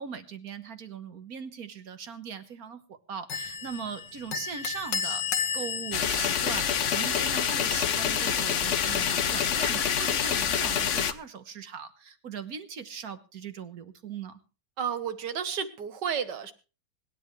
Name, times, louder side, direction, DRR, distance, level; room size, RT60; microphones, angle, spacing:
voice 1, 0.0-5.2 5.5-14.4, right 7 dB, 55° right, 10 dB, 1.6 m, -39 dB
sound 1, 3.3-9.2, left 6 dB, 75° left, 2.2 m, -35 dB
sound 2, 5.9-11.1, left 8 dB, 50° left, 1.0 m, -26 dB
voice 2, 14.8-16.5, right 7 dB, 70° right, 10 dB, 1.9 m, -31 dB
25.0 x 10.5 x 3.2 m, 0.35 s
omnidirectional pair, 1.9 m